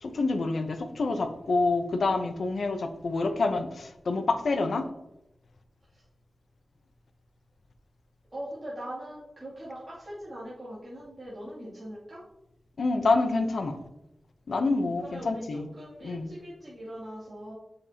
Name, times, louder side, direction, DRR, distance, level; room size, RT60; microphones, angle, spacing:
voice 1, 0.0-4.9 12.8-13.8 14.5-15.7 16.0-16.3, left 3 dB, 70° left, 6 dB, 0.8 m, -27 dB
voice 2, 8.3-12.2 15.0-17.5, equal, 25° right, -10 dB, 2.7 m, -41 dB
7.8 x 6.7 x 2.9 m, 0.87 s
wide cardioid pair, 115°, 0 cm